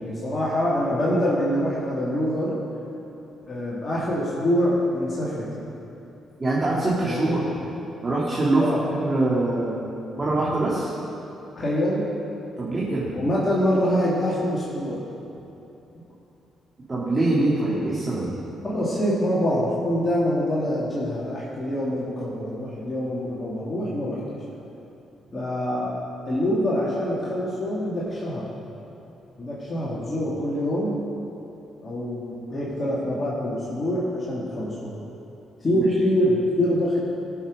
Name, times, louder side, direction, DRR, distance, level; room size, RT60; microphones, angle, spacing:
voice 1, 0.0-2.6 3.5-5.6 7.0-7.4 8.6-8.9 11.6-12.1 13.1-15.1 18.6-24.3 25.3-26.0 26.2-28.5 29.4-31.0 31.8-34.9 35.6-37.0, equal, 35° left, -7 dB, 2.7 m, -25 dB
voice 2, 6.4-7.4 8.0-9.7 10.2-10.9 12.6-13.1 16.9-18.3, right 2 dB, 30° right, -6 dB, 2.8 m, -23 dB
18.0 x 7.2 x 5.2 m, 2.8 s
hypercardioid pair, 45°, 0 cm